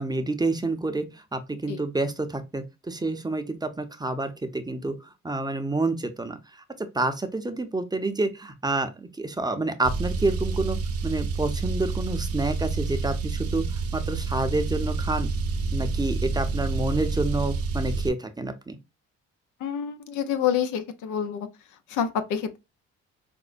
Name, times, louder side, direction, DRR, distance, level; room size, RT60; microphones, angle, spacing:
voice 1, 0.0-5.0 5.2-6.4 6.8-10.8 11.0-15.3 15.7-18.8, right 2 dB, 15° right, 0.6 m, -28 dB
Car, 9.8-18.1, right 4 dB, 50° right, 0.7 m, -28 dB
voice 2, 19.6-21.5 21.9-22.6, left 8 dB, 85° left, 0.7 m, -27 dB
5.1 x 2.1 x 2.4 m
cardioid pair, 90°, 30 cm